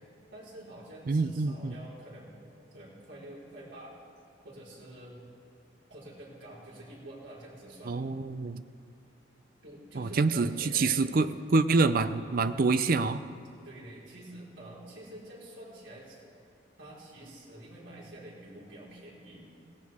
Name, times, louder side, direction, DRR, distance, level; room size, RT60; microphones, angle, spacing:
voice 1, 0.3-2.3 2.7-3.9 4.4-5.2 5.9-8.0 9.6-11.0 13.6-16.2 16.8-19.5, right 1 dB, 90° right, -6 dB, 4.7 m, -47 dB
voice 2, 1.1-1.7 7.9-8.6 10.0-13.2, right 3 dB, 50° right, 12 dB, 0.5 m, -26 dB
17.0 x 17.0 x 3.6 m, 2.4 s
head